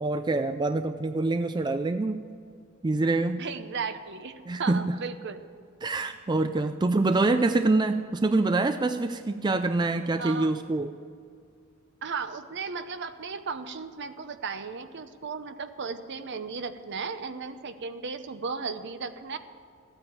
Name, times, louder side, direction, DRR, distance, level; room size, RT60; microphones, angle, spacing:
voice 1, 0.0-2.2 2.8-3.4 4.5-4.8 5.8-10.9, right 2 dB, 20° right, 9 dB, 0.4 m, -25 dB
voice 2, 3.4-5.5 10.2-10.5 12.0-19.4, right 5 dB, 55° right, 10 dB, 0.8 m, -35 dB
14.5 x 9.0 x 7.5 m, 2.3 s
head